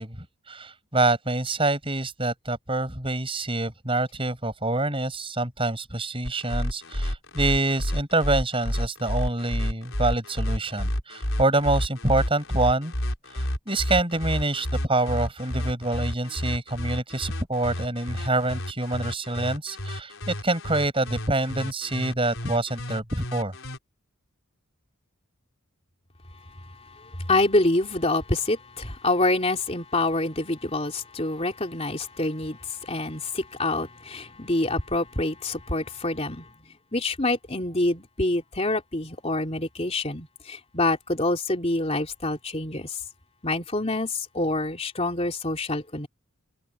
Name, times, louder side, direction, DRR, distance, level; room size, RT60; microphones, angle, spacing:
voice 1, 0.0-12.9 13.4-23.5, right 2 dB, 25° right, 7.5 m, -26 dB
sound 1, 6.2-23.8, equal, 60° left, 5.5 m, -30 dB
voice 2, 27.0-36.5 36.9-43.0 43.4-46.1, left 2 dB, 25° left, 3.3 m, -26 dB
head